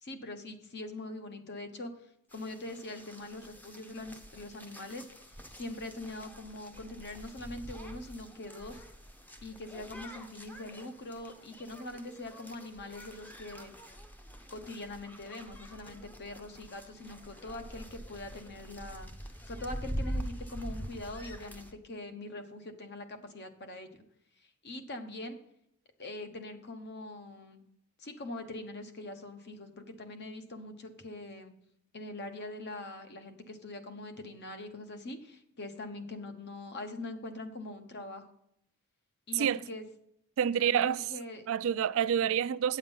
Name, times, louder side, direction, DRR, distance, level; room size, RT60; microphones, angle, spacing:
voice 1, 0.0-8.8 9.4-13.7 14.5-19.1 19.4-23.9 24.4-25.4 26.0-27.6 28.0-31.5 31.9-38.3 39.3-39.8 40.5-41.4, left 2 dB, 50° left, 1.0 m, -43 dB
sound 1, 2.3-21.7, equal, 10° left, 0.7 m, -45 dB
voice 2, 40.4-41.0 41.5-42.8, right 8 dB, 65° right, 0.3 m, -28 dB
9.0 x 7.3 x 5.4 m
head